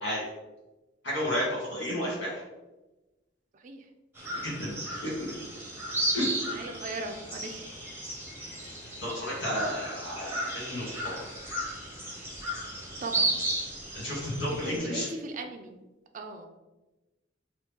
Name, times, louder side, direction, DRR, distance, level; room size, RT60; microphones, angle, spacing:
voice 1, 1.0-2.4 4.4-5.3 6.1-6.3 9.0-10.9 11.1-11.2 13.9-15.1, left 1 dB, 75° left, -6 dB, 1.0 m, -32 dB
voice 2, 3.5-3.9 6.2-7.7 13.0-13.4 14.6-15.8 16.1-16.5, right 3 dB, 45° right, 5 dB, 0.4 m, -39 dB
sound 1, 4.1-14.8, right 1 dB, 15° right, 0.8 m, -34 dB
2.8 x 2.7 x 3.5 m, 1.1 s
head